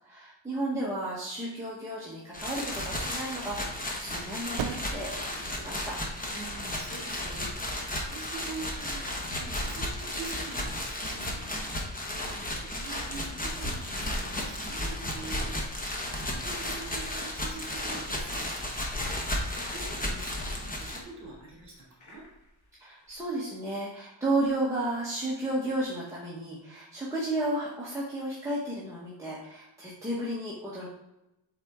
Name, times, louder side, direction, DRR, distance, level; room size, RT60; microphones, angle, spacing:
voice 1, 0.0-6.0 12.1-12.4 22.8-30.9, right 1 dB, 5° right, -7 dB, 1.1 m, -33 dB
sound 1, 1.9-9.2, right 9 dB, 75° right, 0.6 m, -44 dB
sound 2, 2.3-21.0, left 1 dB, 20° left, 1.0 m, -34 dB
voice 2, 6.2-12.2 12.6-18.9 19.6-22.2, right 3 dB, 40° right, -3 dB, 2.5 m, -45 dB
sound 3, 18.3-21.6 21.9-22.5 22.7-22.8 23.0-23.2, left 1 dB, 90° left, 1.9 m, -42 dB
7.9 x 4.2 x 3.6 m, 0.92 s
wide cardioid pair, 180°, 45 cm